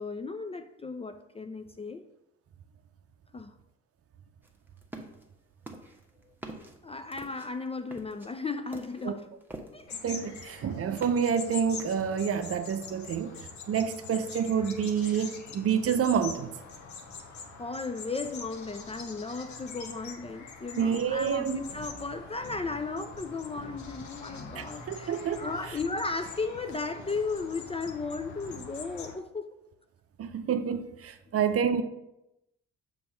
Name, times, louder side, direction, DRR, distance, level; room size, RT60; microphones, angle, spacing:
voice 1, 0.0-2.0 3.3-3.5 6.8-9.3 9.7-9.9 17.6-29.5, left 4 dB, 20° left, 0.4 m, -35 dB
sound 1, 4.4-5.3 5.7-9.9 10.2-11.4 11.8-12.3, right 1 dB, 5° right, 1.1 m, -46 dB
sound 2, 9.9-29.2, left 5 dB, 55° left, 1.0 m, -44 dB
voice 2, 10.0-13.3 13.7-16.5 20.8-21.6 24.6-25.5 30.2-31.8, right 7 dB, 45° right, 0.6 m, -28 dB
sound 3, 20.6-28.7, left 2 dB, 35° left, 1.1 m, -50 dB
6.9 x 3.2 x 5.1 m
hypercardioid pair, 45°, 34 cm